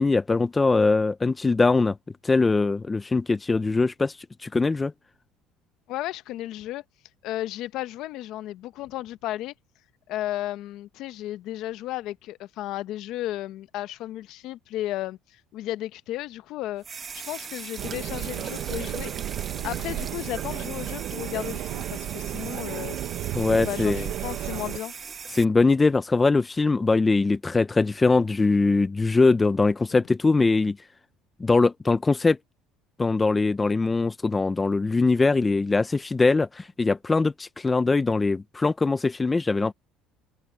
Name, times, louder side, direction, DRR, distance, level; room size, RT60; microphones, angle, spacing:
voice 1, 0.0-2.0 2.2-4.9 23.3-24.1 25.3-30.8 31.4-32.4 33.0-39.7, left 3 dB, 10° left, 0.4 m, -22 dB
voice 2, 5.9-6.8 7.2-9.5 10.1-16.8 17.1-19.1 19.6-23.0 23.6-24.9, left 14 dB, 55° left, 0.7 m, -34 dB
sound 1, 16.8-25.5, right 6 dB, 25° right, 1.3 m, -39 dB
sound 2, 17.8-24.8, right 13 dB, 50° right, 0.6 m, -33 dB
cardioid pair, 175°, 0 cm